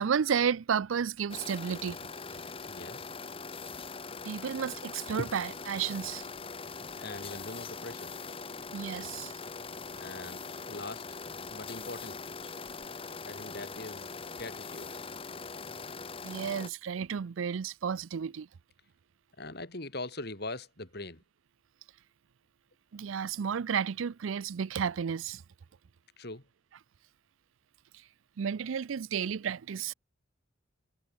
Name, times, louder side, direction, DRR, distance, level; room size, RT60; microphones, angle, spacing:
voice 1, 0.0-2.0 2.3-2.4 4.2-6.3 8.7-9.4 16.2-18.5 22.9-25.4 27.9-28.0 28.4-29.9, right 7 dB, 85° right, 0.4 m, -32 dB
sound 1, 1.3-16.7, left 4 dB, 30° left, 1.1 m, -42 dB
voice 2, 2.6-3.1 7.0-8.1 10.0-11.2 11.5-12.2 13.2-14.1 14.4-14.9 19.4-21.2 26.2-26.4, left 2 dB, 55° left, 4.3 m, -42 dB
head